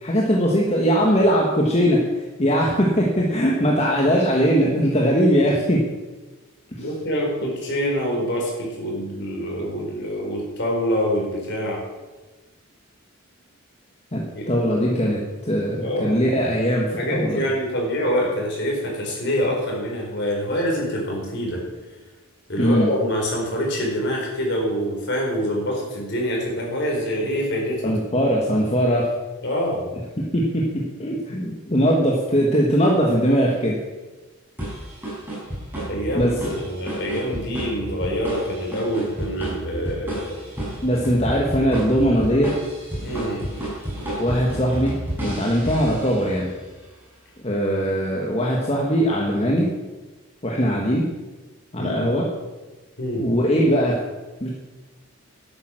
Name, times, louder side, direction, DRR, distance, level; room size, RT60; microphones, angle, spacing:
voice 1, 0.0-2.0 2.4-5.8 6.7-6.9 14.1-17.4 22.6-22.9 27.8-29.1 30.3-30.6 31.0-33.8 36.1-36.3 40.8-42.6 44.2-44.9 45.2-46.5 47.4-49.7 50.4-51.1 51.7-52.2 53.2-54.0 54.4-54.5, equal, 30° left, -2 dB, 1.5 m, -20 dB
voice 2, 6.8-11.8 14.3-14.5 15.8-16.2 17.0-21.6 22.5-27.9 29.4-29.8 35.8-40.3 43.0-43.4 51.8-52.1 53.0-53.3, equal, 55° left, -1 dB, 4.3 m, -25 dB
sound 1, 34.6-46.5, right 1 dB, 10° right, 5.3 m, -32 dB
12.0 x 9.1 x 6.3 m, 1.2 s
head